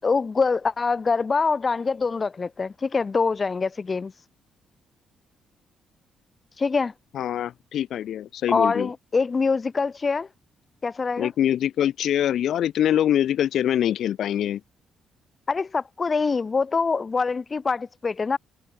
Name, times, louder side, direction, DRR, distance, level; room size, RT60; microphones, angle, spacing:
voice 1, 0.0-4.1 6.6-6.9 8.5-10.3 10.8-11.3 15.5-18.4, left 4 dB, 30° left, 5.9 m, -24 dB
voice 2, 7.1-8.9 11.2-14.6, left 10 dB, 70° left, 5.1 m, -24 dB
cardioid pair, 90°, 0 cm